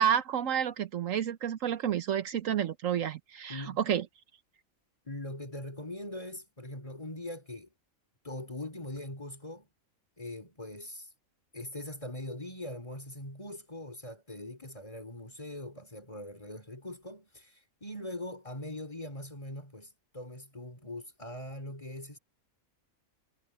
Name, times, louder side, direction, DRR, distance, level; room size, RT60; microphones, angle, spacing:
voice 1, 0.0-4.0, right 9 dB, 70° right, 1.2 m, -30 dB
voice 2, 3.5-3.8 5.1-7.7 8.2-9.7 10.2-11.1 11.5-22.2, left 1 dB, 25° left, 3.4 m, -41 dB
omnidirectional pair, 1.4 m